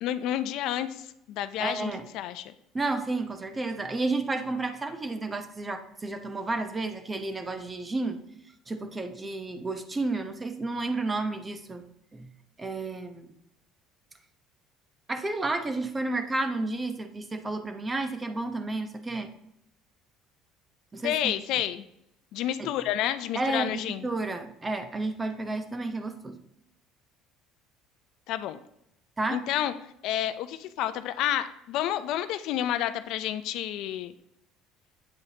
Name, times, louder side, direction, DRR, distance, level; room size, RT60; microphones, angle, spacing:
voice 1, 0.0-2.5 21.0-21.8 22.3-24.1 28.3-28.6 29.3-29.7 30.0-34.1, left 12 dB, 70° left, 12 dB, 0.5 m, -30 dB
voice 2, 1.6-2.1 2.7-8.2 8.7-11.8 12.1-12.3 12.6-13.3 15.1-19.3 20.9-21.4 22.6-22.7 23.3-26.4 29.2-29.4, right 2 dB, 20° right, 8 dB, 0.9 m, -31 dB
8.4 x 7.8 x 2.9 m, 0.80 s
supercardioid pair, 90°, 0 cm